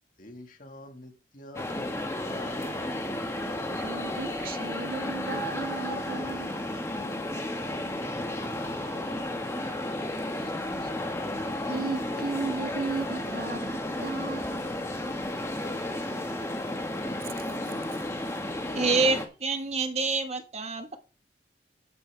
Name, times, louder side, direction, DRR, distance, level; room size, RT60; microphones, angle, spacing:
voice 1, 0.2-3.2 6.9-9.7, left 1 dB, 50° left, 2.0 m, -48 dB
sound 1, 1.5-19.2, left 1 dB, 15° left, 1.7 m, -33 dB
voice 2, 3.7-6.6 10.4-10.9 11.3-14.7 17.2-18.0, right 4 dB, 55° right, 0.6 m, -36 dB
voice 3, 18.7-21.0, right 3 dB, 40° right, 1.5 m, -27 dB
11.5 x 9.4 x 3.5 m
head